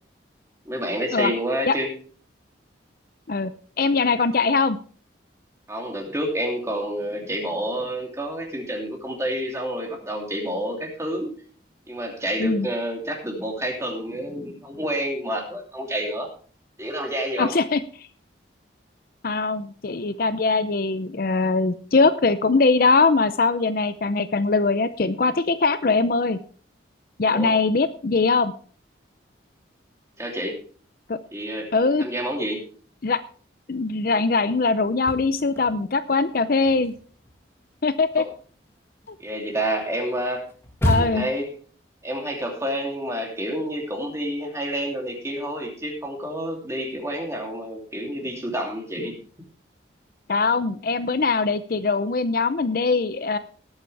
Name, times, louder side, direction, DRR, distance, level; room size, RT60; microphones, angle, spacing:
voice 1, 0.7-1.9 5.7-11.3 11.9-16.3 16.8-17.6 27.3-27.5 30.2-30.6 31.3-31.7 32.0-32.6 38.2-38.3 39.2-40.4 40.9-41.5 42.0-49.1, right 1 dB, 15° right, 1 dB, 2.8 m, -29 dB
voice 2, 3.8-4.8 12.4-12.7 17.4-18.1 19.2-26.4 27.2-28.5 31.1-31.2 31.7-32.0 33.0-33.2 33.7-36.9 37.8-38.3 39.1-39.2 40.8-41.3 50.3-53.4, left 4 dB, 50° left, 12 dB, 0.5 m, -21 dB
sound 1, 34.8-36.1 36.4-41.5, equal, 15° left, 1.6 m, -30 dB
19.0 x 8.8 x 3.3 m, 0.42 s
head